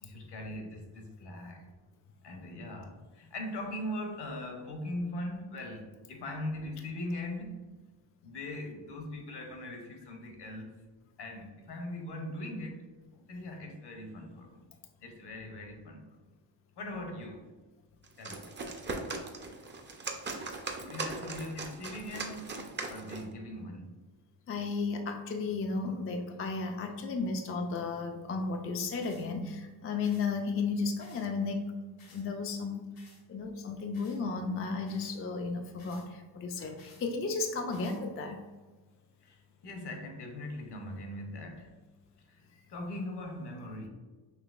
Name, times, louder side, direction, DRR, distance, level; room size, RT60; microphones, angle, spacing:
voice 1, 0.0-1.7 2.2-7.8 8.2-10.7 11.2-12.8 13.1-14.6 15.0-16.2 16.8-17.5 18.2-18.5 20.8-22.5 22.8-24.0 39.2-41.7 42.3-42.4 42.7-43.9, left 1 dB, 60° left, 0.9 m, -40 dB
sound 1, 18.0-23.3, right 3 dB, 25° right, 0.5 m, -39 dB
voice 2, 24.5-31.7 32.1-32.9 33.3-38.4, left 4 dB, 30° left, 0.4 m, -34 dB
sound 2, 29.0-29.3 30.0-30.3 31.0-31.3 32.0-32.2 33.0-33.2 33.9-34.2 34.8-35.2 35.8-36.1 36.8-37.1 37.7-38.0, left 4 dB, 80° left, 1.2 m, -58 dB
5.9 x 2.8 x 2.4 m
cardioid pair, 95°, 45 cm